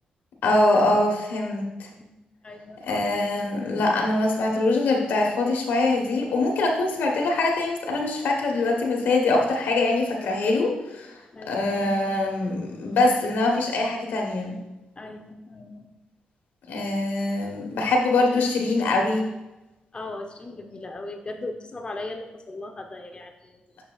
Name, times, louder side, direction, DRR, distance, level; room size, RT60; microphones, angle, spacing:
voice 1, 0.4-1.9 2.8-11.2 11.5-14.5 16.7-19.3, left 2 dB, 90° left, 1 dB, 1.2 m, -23 dB
voice 2, 2.4-2.8 11.3-11.7 15.0-15.9 19.9-23.5, left 2 dB, 35° left, 5 dB, 0.7 m, -38 dB
6.9 x 6.8 x 2.4 m, 1.0 s
cardioid pair, 80°, 3 cm